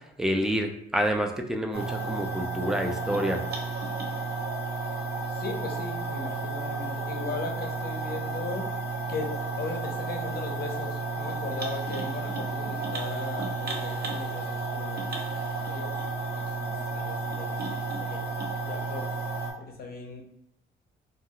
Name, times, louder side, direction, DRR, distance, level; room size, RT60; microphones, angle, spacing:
voice 1, 0.2-3.4, equal, 5° right, 3 dB, 0.4 m, -28 dB
sound 1, 1.7-19.5, right 3 dB, 55° right, 0.7 m, -32 dB
voice 2, 5.3-8.7 9.1-15.1 15.6-15.9 16.3-18.3 18.6-19.1 19.6-20.2, left 3 dB, 50° left, 3 dB, 0.6 m, -38 dB
2.3 x 2.3 x 2.8 m, 0.79 s
cardioid pair, 90°, 20 cm